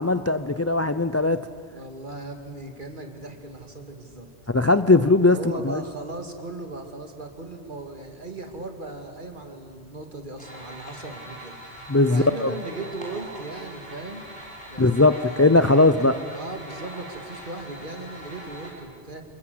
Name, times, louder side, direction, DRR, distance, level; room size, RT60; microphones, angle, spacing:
voice 1, 0.0-1.5 4.5-5.8 11.9-12.5 14.8-16.1, left 2 dB, 25° left, 12 dB, 0.4 m, -19 dB
voice 2, 1.7-4.3 5.3-11.6 12.1-14.2 14.7-19.2, right 2 dB, 45° right, 5 dB, 2.4 m, -38 dB
sound 1, 10.4-18.7, right 1 dB, 5° left, 5.2 m, -42 dB
28.5 x 20.5 x 7.9 m, 2.1 s
omnidirectional pair, 1.1 m